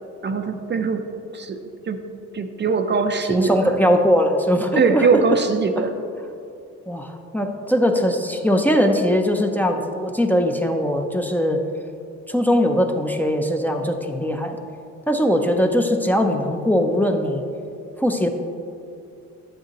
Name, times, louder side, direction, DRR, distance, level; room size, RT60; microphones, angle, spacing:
voice 1, 0.2-1.0 1.3-1.6 1.9-2.0 2.3-3.7 4.8-5.9, right 4 dB, 35° right, 6 dB, 0.6 m, -21 dB
voice 2, 3.3-5.2 5.8-5.9 6.9-11.6 12.3-14.6 15.1-17.4 18.0-18.3, equal, 5° left, 3 dB, 0.6 m, -20 dB
10.0 x 7.7 x 3.0 m, 2.5 s
cardioid pair, 90°, 30 cm